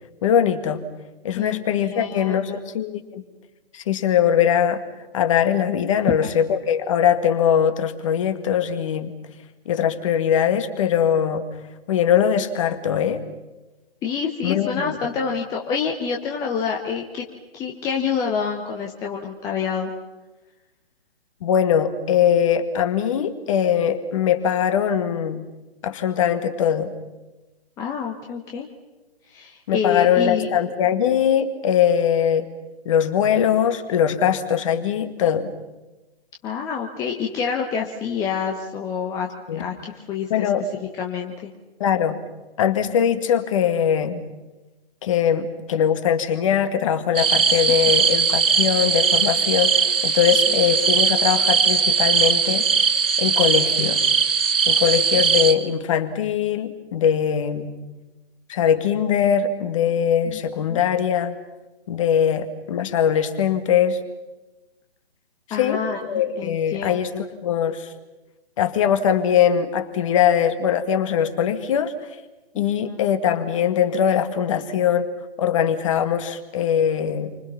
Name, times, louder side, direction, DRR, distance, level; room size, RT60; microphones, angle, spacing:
voice 1, 0.2-0.8 1.2-3.2 3.7-4.8 5.1-9.1 9.7-11.4 11.9-13.2 14.4-15.0 21.4-25.4 25.8-26.9 29.7-32.5 32.9-35.5 39.5-39.6 40.3-40.6 41.8-42.2 42.6-44.3 45.0-52.6 53.2-54.1 54.7-57.7 58.5-61.3 61.9-64.0 65.6-65.8 66.1-67.1 67.4-67.9 68.6-71.9 72.6-75.1 75.4-77.4, left 8 dB, 30° left, 9 dB, 2.0 m, -21 dB
voice 2, 1.3-2.6 6.1-6.3 14.0-17.2 17.5-19.9 27.8-28.7 29.3-30.5 36.4-39.3 39.5-41.5 48.0-48.1 50.5-50.6 60.3-60.4 60.7-60.8 65.5-67.3 72.5-73.0, left 6 dB, 10° left, 0 dB, 1.1 m, -28 dB
sound 1, 47.1-55.5, right 6 dB, 60° right, 2.3 m, -19 dB
30.0 x 25.0 x 5.8 m, 1.1 s
figure-of-eight pair, 135°, 32 cm